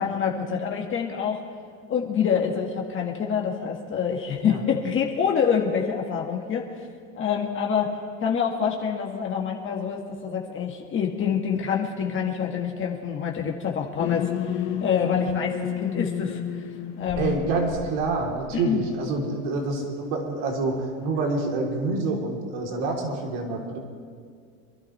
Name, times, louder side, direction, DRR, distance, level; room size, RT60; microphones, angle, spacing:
voice 1, 0.0-1.4 1.9-6.7 7.2-7.9 8.2-16.7 17.0-17.3 18.5-18.8, left 7 dB, 30° left, 0 dB, 1.8 m, -26 dB
sound 1, 14.0-18.7, left 9 dB, 70° left, 2.5 m, -31 dB
voice 2, 17.2-20.7 21.0-23.8, right 3 dB, 65° right, 0 dB, 3.4 m, -27 dB
27.0 x 11.5 x 3.3 m, 2.1 s
supercardioid pair, 115°, 39 cm